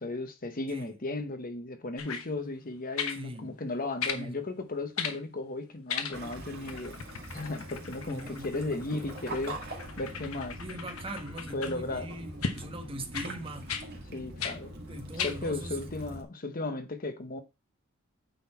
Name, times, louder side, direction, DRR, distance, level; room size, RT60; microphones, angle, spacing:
voice 1, 0.0-7.0 7.3-9.6 10.0-10.6 11.5-12.1 14.1-14.7 15.2-17.4, left 2 dB, 45° left, 1.0 m, -35 dB
sound 1, 2.0-2.3 3.0-3.2 4.0-4.2 5.0-5.2 5.9-6.4 6.7-11.8 12.4-12.6 13.1-13.3 13.7-13.9 14.4-14.6 15.2-15.4 16.0-16.1, left 6 dB, 85° left, 1.1 m, -36 dB
voice 2, 3.1-3.6 4.1-4.3 8.0-8.8 10.6-13.7 14.9-15.8, right 1 dB, 25° right, 1.3 m, -41 dB
Waves surf / Splash splatter / Trickle dribble, 6.1-16.2, right 1 dB, 50° right, 2.2 m, -43 dB
9.2 x 4.2 x 4.4 m
head